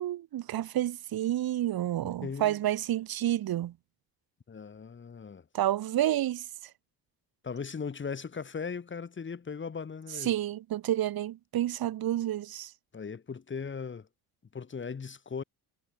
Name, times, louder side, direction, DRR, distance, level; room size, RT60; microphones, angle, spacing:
voice 1, 0.0-3.7 5.5-6.4 10.2-12.7, right 13 dB, 60° right, 2.6 m, -29 dB
voice 2, 2.0-2.6 4.5-5.4 7.4-10.3 12.9-14.1 14.5-15.4, left 5 dB, 30° left, 4.7 m, -38 dB
cardioid pair, 130°, 40 cm